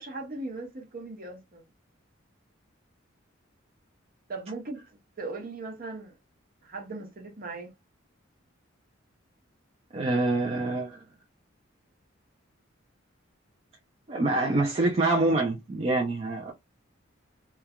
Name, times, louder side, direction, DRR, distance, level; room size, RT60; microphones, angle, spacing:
voice 1, 0.0-1.6 4.3-4.9 5.2-6.2 6.6-7.7, right 3 dB, 45° right, 0.8 m, -38 dB
voice 2, 9.9-11.0 14.1-16.5, right 2 dB, 30° right, 0.4 m, -26 dB
3.1 x 2.2 x 2.2 m
head